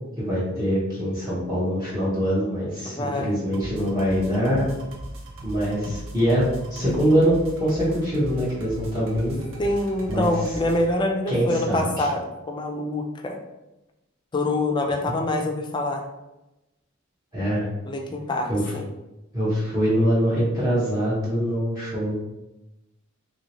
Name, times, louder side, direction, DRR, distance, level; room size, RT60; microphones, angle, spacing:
voice 1, 0.2-4.7 5.4-9.4 10.1-10.3 11.3-12.1 17.3-17.7 18.5-18.6 19.3-22.2, equal, 20° right, -10 dB, 0.8 m, -23 dB
voice 2, 2.8-3.4 9.6-13.4 14.3-16.0 17.9-18.9, left 1 dB, 20° left, 3 dB, 0.4 m, -25 dB
sound 1, 3.5-10.9, right 1 dB, 70° right, 0.6 m, -39 dB
3.0 x 2.7 x 2.8 m, 0.96 s
head